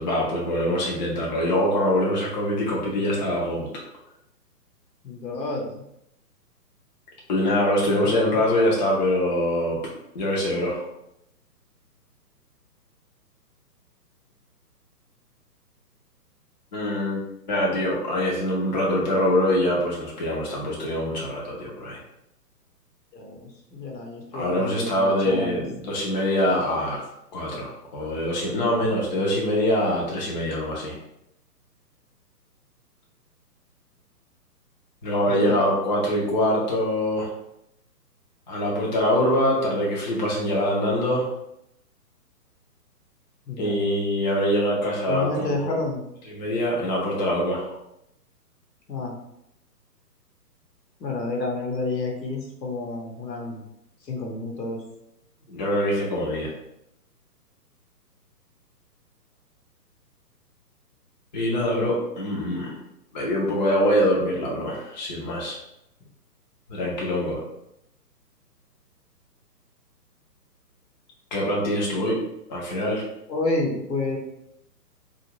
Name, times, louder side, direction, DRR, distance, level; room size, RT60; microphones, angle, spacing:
voice 1, 0.0-3.7 7.3-9.8 10.1-10.9 16.7-17.2 17.5-22.0 24.3-27.0 27.3-31.0 35.0-37.3 38.5-41.2 43.6-45.7 46.3-47.8 55.5-56.5 61.3-62.7 63.1-65.6 66.7-67.4 71.3-72.2 72.5-73.0, left 1 dB, 30° left, -4 dB, 0.5 m, -24 dB
voice 2, 5.0-5.8 8.0-8.4 23.1-25.6 35.2-35.7 43.5-43.8 45.1-46.0 48.9-49.2 51.0-53.6 54.0-54.8 73.3-74.2, left 2 dB, 85° left, 0 dB, 1.0 m, -30 dB
2.6 x 2.4 x 2.9 m, 0.80 s
hypercardioid pair, 140°, 49 cm